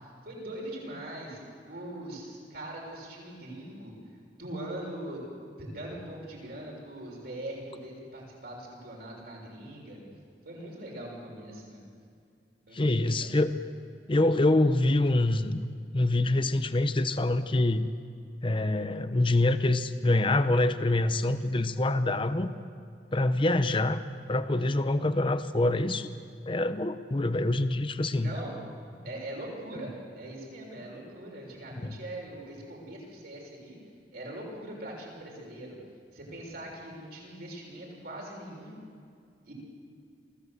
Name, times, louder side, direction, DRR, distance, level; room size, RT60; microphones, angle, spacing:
voice 1, 0.2-1.4 1.7-3.9 4.4-5.3 5.6-10.0 10.4-11.8 12.7-13.3 28.1-28.6 29.0-33.8 34.1-35.8 36.1-38.8 39.4-39.5, right 1 dB, 60° right, -2 dB, 6.5 m, -41 dB
voice 2, 12.7-13.5 14.1-15.7 15.9-17.9 18.4-22.5 23.1-24.0 24.3-26.1 26.5-28.3 31.8-32.0, left 2 dB, 30° left, 11 dB, 0.7 m, -25 dB
24.5 x 16.0 x 8.2 m, 2.3 s
head